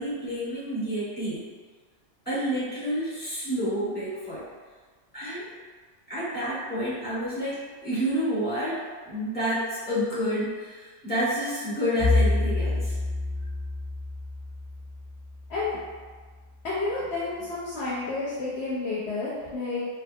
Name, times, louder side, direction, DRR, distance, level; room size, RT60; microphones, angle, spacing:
voice 1, 0.0-1.4 2.2-4.4 5.1-5.5 6.1-13.0, equal, 10° left, -11 dB, 1.1 m, -29 dB
Bowed string instrument, 12.0-16.2, left 2 dB, 30° left, 0.5 m, -28 dB
voice 2, 16.6-19.9, left 3 dB, 65° left, -7 dB, 0.7 m, -30 dB
2.7 x 2.3 x 2.6 m, 1.5 s
omnidirectional pair, 1.3 m